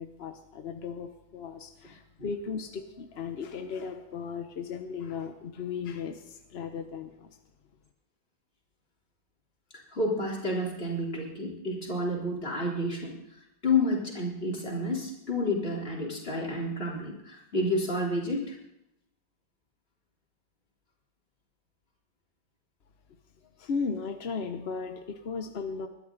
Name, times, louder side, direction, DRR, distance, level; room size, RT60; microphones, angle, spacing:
voice 1, 0.0-7.3 23.6-25.9, left 5 dB, 50° left, 6 dB, 0.7 m, -36 dB
voice 2, 9.9-13.2 13.6-18.6, left 1 dB, 30° left, -3 dB, 3.7 m, -30 dB
21.0 x 12.0 x 3.9 m, 0.82 s
omnidirectional pair, 2.1 m